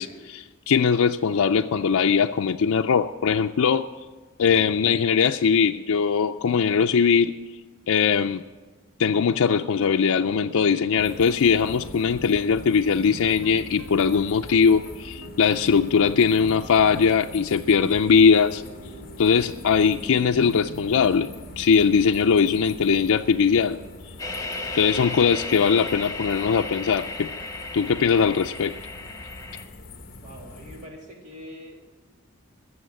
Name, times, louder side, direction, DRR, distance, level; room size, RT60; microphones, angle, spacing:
voice 1, 0.0-3.9 4.4-7.3 7.9-8.4 9.0-18.6 19.2-21.3 21.6-23.8 24.7-27.3 27.7-28.7, left 6 dB, 85° left, 5 dB, 0.4 m, -20 dB
sound 1, 9.0-26.0, right 2 dB, 70° right, 0.9 m, -45 dB
sound 2, 11.0-30.9, left 2 dB, 45° left, 1.0 m, -44 dB
sound 3, 24.2-29.6, left 3 dB, 15° left, 1.1 m, -34 dB
voice 2, 30.2-31.9, equal, 35° right, 0 dB, 2.7 m, -43 dB
14.0 x 7.1 x 10.0 m, 1.2 s
head